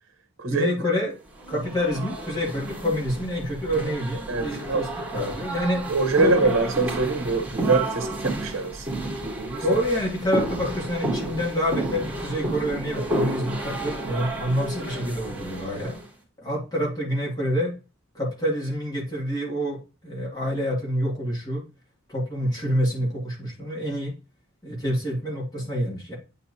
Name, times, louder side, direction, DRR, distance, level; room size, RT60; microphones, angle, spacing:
voice 1, 0.5-1.2 1.5-5.9 6.2-6.5 9.6-16.0 16.4-17.7 18.1-21.6 22.1-24.1 24.6-26.2, equal, 20° left, 2.1 m, -27 dB
sound 1, 1.3-16.1, right 2 dB, 10° right, 3.0 m, -32 dB
voice 2, 4.3-4.8 5.9-8.9 9.2-9.6, right 3 dB, 70° right, 0.8 m, -24 dB
9.1 x 4.4 x 2.7 m
head